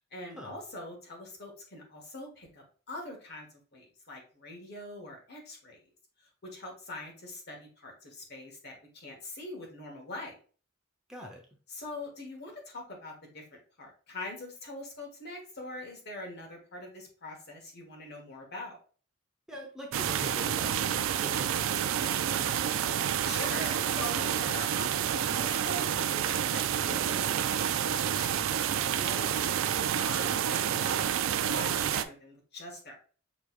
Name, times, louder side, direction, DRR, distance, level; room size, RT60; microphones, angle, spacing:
voice 1, 0.1-5.8 6.4-10.3 11.7-13.4 13.8-18.8 23.2-29.5 29.8-33.0, left 1 dB, 50° left, 1 dB, 1.4 m, -43 dB
voice 2, 11.1-11.5 19.5-22.9, equal, 5° right, -1 dB, 0.7 m, -45 dB
sound 1, 19.9-32.0, right 9 dB, 70° right, 0.3 m, -29 dB
6.1 x 3.2 x 2.4 m, 0.40 s
head